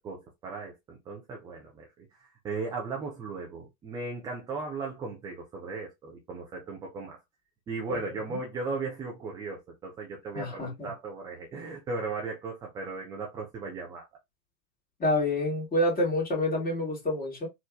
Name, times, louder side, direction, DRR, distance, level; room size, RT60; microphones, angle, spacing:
voice 1, 0.0-7.2 7.7-14.0, right 4 dB, 10° right, 0.3 m, -37 dB
voice 2, 10.3-10.9 15.0-17.5, left 1 dB, 15° left, 1.9 m, -28 dB
4.3 x 2.4 x 2.3 m
figure-of-eight pair, 95°, 49 cm